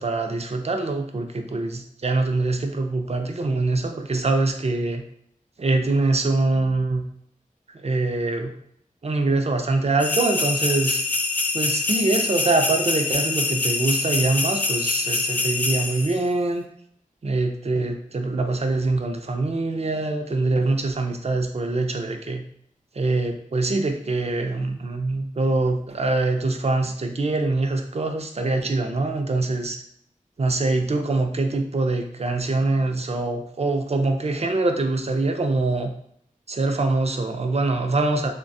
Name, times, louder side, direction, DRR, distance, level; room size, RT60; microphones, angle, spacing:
voice 1, 0.0-5.0 5.6-7.0 7.7-8.5 9.0-11.0 11.5-16.6 17.2-22.4 22.9-29.8 30.4-35.9 36.5-38.3, right 2 dB, 45° right, 5 dB, 0.4 m, -24 dB
sound 1, 10.0-16.2, left 3 dB, 10° left, 0.4 m, -25 dB
3.2 x 2.2 x 2.6 m, 0.69 s
wide cardioid pair, 55°, 14 cm